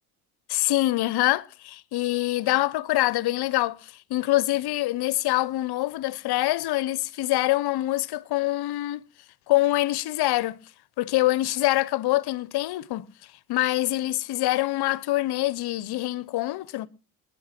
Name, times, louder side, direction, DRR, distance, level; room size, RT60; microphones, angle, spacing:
voice 1, 0.5-9.0 9.5-10.6 11.0-13.1 13.5-16.9, left 16 dB, 60° left, 0.9 m, -25 dB
20.0 x 9.2 x 5.9 m
supercardioid pair, 95°, 43 cm